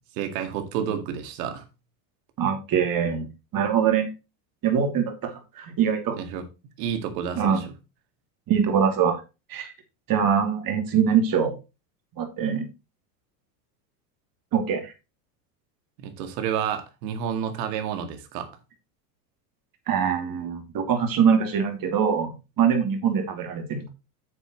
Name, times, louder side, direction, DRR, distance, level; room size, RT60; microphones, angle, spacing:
voice 1, 0.2-1.6 6.2-6.4 6.8-7.6 16.0-18.5, right 8 dB, 70° right, 2.2 m, -30 dB
voice 2, 2.4-3.3 3.5-4.1 4.6-6.2 7.3-7.6 8.5-9.2 9.5-9.7 10.1-11.5 12.2-12.7 14.5-14.9 19.9-23.9, right 7 dB, 40° right, 2.9 m, -23 dB
9.2 x 7.4 x 3.1 m
supercardioid pair, 105°, 50 cm